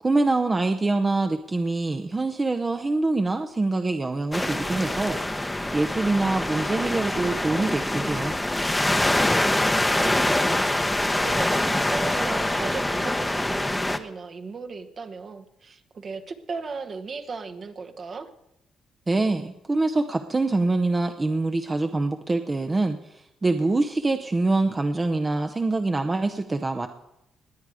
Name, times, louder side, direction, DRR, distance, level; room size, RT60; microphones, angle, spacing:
voice 1, 0.0-5.2 5.4-8.4 19.1-23.0 23.4-26.9, right 2 dB, 25° right, 6 dB, 0.7 m, -24 dB
sound 1, 4.3-14.0, left 1 dB, 10° left, 0.8 m, -24 dB
voice 2, 9.5-10.7 11.2-18.3, right 4 dB, 45° right, 7 dB, 1.1 m, -36 dB
20.0 x 8.2 x 4.9 m, 0.87 s
cardioid pair, 90°, 0 cm